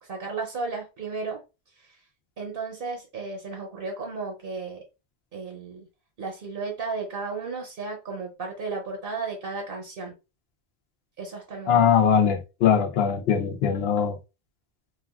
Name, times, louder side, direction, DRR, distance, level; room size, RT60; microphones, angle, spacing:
voice 1, 0.0-1.4 1.7-2.0 2.4-4.8 5.3-5.9 6.2-10.1 11.2-11.9, right 4 dB, 65° right, 0.9 m, -34 dB
voice 2, 11.7-14.2, left 7 dB, 75° left, 0.8 m, -21 dB
3.0 x 2.3 x 2.3 m
omnidirectional pair, 1.0 m